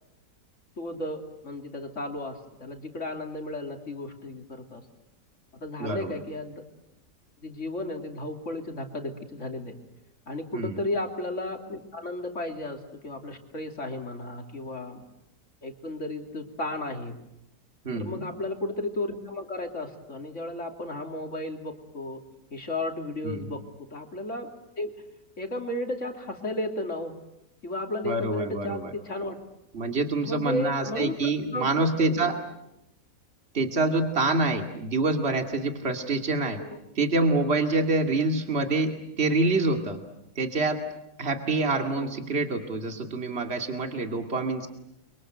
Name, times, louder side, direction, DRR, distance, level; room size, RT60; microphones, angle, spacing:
voice 1, 0.8-4.8 5.5-6.6 7.4-9.8 10.3-15.0 15.6-17.2 17.9-22.2 22.5-23.6 23.9-24.5 24.8-24.9 25.4-27.2 27.6-29.4 30.2-32.4 36.6-36.8 41.9-42.2, left 1 dB, 45° left, 4 dB, 3.2 m, -34 dB
voice 2, 5.8-6.1 10.5-10.8 17.8-18.2 23.2-23.5 28.0-28.9 29.7-32.4 33.5-36.6 37.0-40.0 40.4-40.8 41.2-44.7, right 3 dB, 40° right, 5 dB, 2.7 m, -26 dB
30.0 x 24.5 x 7.9 m, 0.85 s
omnidirectional pair, 1.7 m